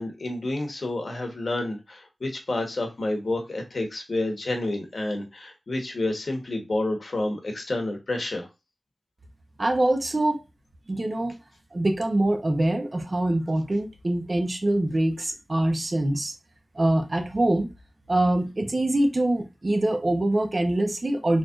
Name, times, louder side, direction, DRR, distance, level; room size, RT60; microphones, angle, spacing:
voice 1, 0.0-8.5, left 2 dB, 65° left, 1.2 m, -29 dB
voice 2, 9.6-10.4 10.9-11.4 11.7-16.3 16.7-17.7 18.1-21.4, right 1 dB, 45° right, 0.8 m, -24 dB
4.2 x 3.1 x 2.5 m
cardioid pair, 55°, 0 cm